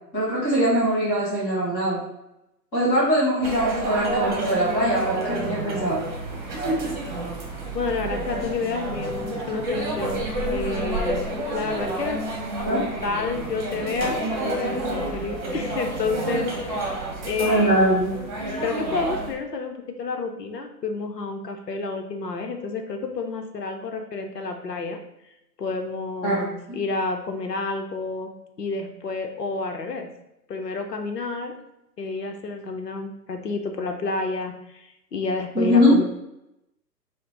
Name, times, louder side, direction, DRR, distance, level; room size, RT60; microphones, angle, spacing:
voice 1, 0.1-2.0 2.7-6.0 12.6-12.8 17.4-18.1 26.2-26.4 26.7-26.8 35.5-35.9, equal, 10° left, -7 dB, 0.6 m, -21 dB
sound 1, 3.4-19.3, right 1 dB, 30° right, 1.0 m, -29 dB
voice 2, 7.7-10.2 10.5-11.2 11.5-12.2 12.7-17.8 18.6-25.0 25.6-30.1 30.5-31.5 32.0-36.0, left 4 dB, 70° left, 5 dB, 0.8 m, -30 dB
5.0 x 2.2 x 4.2 m, 0.87 s
figure-of-eight pair, 125°, 50 cm